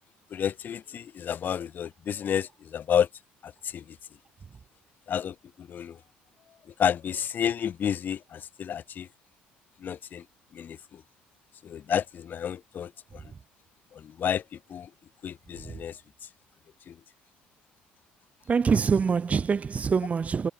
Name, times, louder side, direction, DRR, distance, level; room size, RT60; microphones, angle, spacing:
voice 1, 0.3-3.1 3.4-3.8 5.1-6.0 6.8-9.1 9.8-10.2 10.5-11.0 11.6-13.2 13.9-14.4 14.7-14.9 15.2-16.0 16.9-17.0, left 8 dB, 50° left, 3.8 m, -30 dB
voice 2, 18.5-20.5, right 5 dB, 35° right, 1.3 m, -24 dB
supercardioid pair, 70°, 4 cm